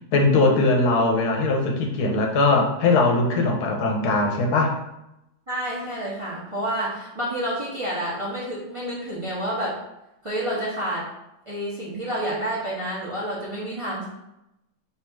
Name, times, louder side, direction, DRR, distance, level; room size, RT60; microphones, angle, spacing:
voice 1, 0.1-4.7, left 3 dB, 90° left, 2 dB, 1.3 m, -20 dB
voice 2, 5.5-9.8 10.2-11.0 11.5-14.1, right 1 dB, 25° right, -6 dB, 0.7 m, -29 dB
3.4 x 2.7 x 4.5 m, 0.87 s
omnidirectional pair, 1.7 m